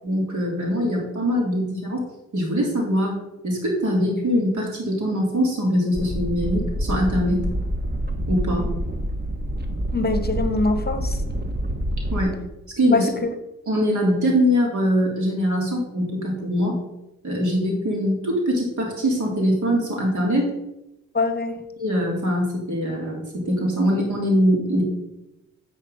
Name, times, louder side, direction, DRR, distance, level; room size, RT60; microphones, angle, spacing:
voice 1, 0.0-2.0 2.3-3.1 3.4-7.5 8.3-8.7 12.1-12.4 12.8-13.1 13.7-16.8 17.2-20.5 21.8-24.8, equal, 65° right, -1 dB, 3.3 m, -22 dB
sound 1, 5.9-12.2, equal, 30° right, 1.5 m, -27 dB
voice 2, 9.9-11.2 12.9-13.3 21.1-21.6, left 3 dB, 30° left, 9 dB, 1.0 m, -23 dB
9.2 x 4.6 x 5.5 m, 0.92 s
supercardioid pair, 55°, 33 cm